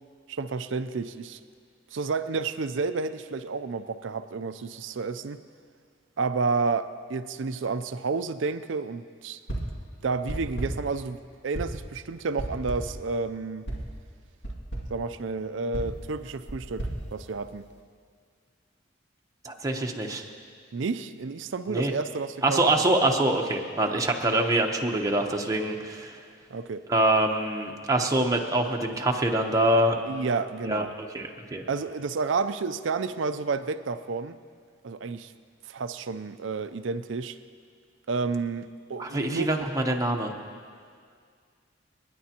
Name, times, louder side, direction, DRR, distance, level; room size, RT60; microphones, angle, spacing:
voice 1, 0.3-1.4 1.9-5.4 6.2-9.4 10.0-11.2 11.4-13.7 14.9-17.7 20.7-22.7 26.5-26.9 30.1-30.9 31.7-34.4 34.8-35.3 35.7-37.4 38.1-39.5, right 4 dB, 75° right, 12 dB, 0.5 m, -30 dB
sound 1, 9.5-9.8 10.3-10.9 11.5-11.9 12.4-13.0 13.7-13.9 14.4-15.0 15.7-17.8, right 1 dB, 70° left, 2.3 m, -35 dB
voice 2, 19.4-20.3 21.7-21.9 22.4-26.2 26.9-30.0 30.6-31.6 39.0-40.3, right 1 dB, 15° right, 1 dB, 0.9 m, -25 dB
30.0 x 10.0 x 2.9 m, 2.1 s
head